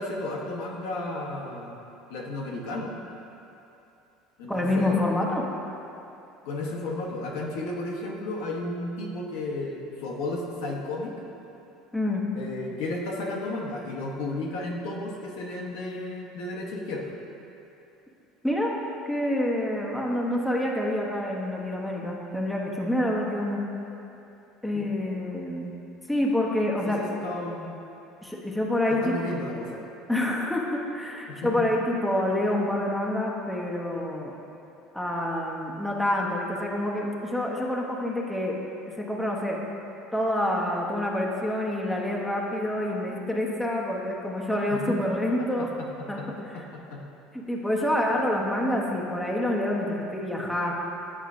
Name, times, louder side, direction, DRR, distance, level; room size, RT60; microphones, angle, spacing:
voice 1, 0.0-1.8 2.1-2.9 4.4-5.0 6.4-11.1 12.4-17.1 24.7-24.9 26.8-27.7 28.9-29.8 31.3-31.6 44.7-45.0 45.4-47.0 47.9-48.1, left 2 dB, 80° left, -2 dB, 0.9 m, -33 dB
voice 2, 4.5-5.5 11.9-12.2 18.4-18.7 19.1-23.6 24.6-25.7 26.1-27.0 28.2-29.2 30.1-34.3 34.9-38.6 39.0-39.6 40.1-45.7 46.1-46.2 47.3-50.7, left 1 dB, 5° left, -2 dB, 0.7 m, -27 dB
8.7 x 4.5 x 2.5 m, 2.8 s
supercardioid pair, 100°, 0 cm